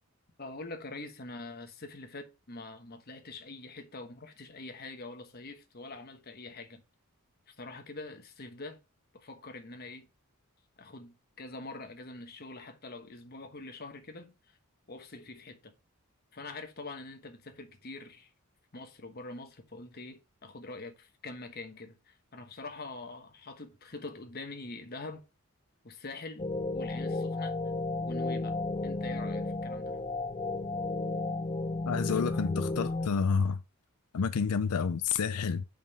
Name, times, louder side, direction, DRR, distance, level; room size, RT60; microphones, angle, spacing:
voice 1, 0.4-6.8 7.5-8.8 9.1-10.1 10.8-14.3 14.9-15.7 16.3-18.3 18.7-25.2 25.8-26.5 26.7-27.6 28.1-30.0, left 2 dB, 45° left, 1.1 m, -44 dB
sound 1, 26.4-33.1, left 2 dB, 25° left, 0.4 m, -33 dB
voice 2, 31.9-33.6 34.1-35.6, left 5 dB, 85° left, 0.5 m, -29 dB
5.4 x 5.2 x 5.4 m
head